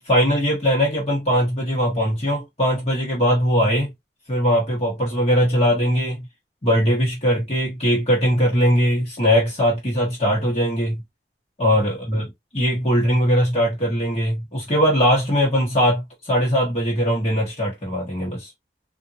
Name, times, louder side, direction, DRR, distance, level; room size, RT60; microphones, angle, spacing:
voice 1, 0.0-3.9 4.3-6.3 6.6-11.0 11.6-12.2 12.5-18.5, equal, 35° left, 1.3 m, -20 dB
3.6 x 2.6 x 2.6 m
head